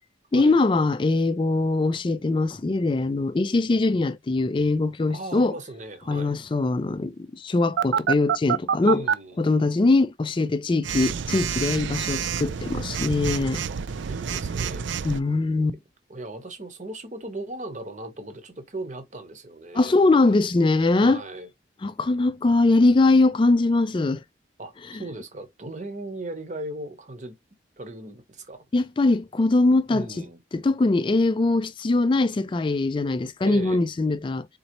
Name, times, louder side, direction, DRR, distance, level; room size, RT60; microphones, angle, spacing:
voice 1, 0.3-5.5 6.1-9.1 9.4-13.6 15.0-15.8 19.7-21.2 21.8-24.2 28.7-30.3 30.5-34.5, left 2 dB, 25° left, 0.3 m, -22 dB
voice 2, 5.1-6.3 8.8-9.5 13.7-13.8 14.1-14.9 16.1-20.0 21.0-21.5 24.6-27.4 27.8-28.6 29.9-30.4 33.4-33.8, right 1 dB, 40° right, 1.1 m, -37 dB
Telephone, 7.8-9.1 10.8-15.2, right 7 dB, 85° right, 0.4 m, -27 dB
4.1 x 4.0 x 2.9 m
head